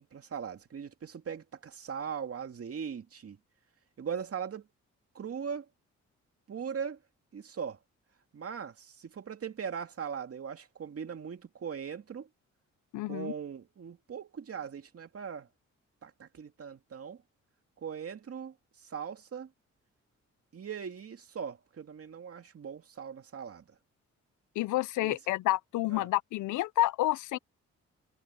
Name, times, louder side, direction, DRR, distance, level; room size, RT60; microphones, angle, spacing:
voice 1, 0.0-3.4 4.0-4.7 5.1-5.7 6.5-7.0 7.3-7.8 8.3-12.3 13.1-15.5 16.0-17.2 17.8-18.5 18.9-19.5 20.5-23.6 25.0-25.2 25.9-26.1, right 7 dB, 50° right, 2.4 m, -39 dB
voice 2, 12.9-13.3 24.6-27.4, left 16 dB, 90° left, 0.6 m, -29 dB
cardioid pair, 70°, 29 cm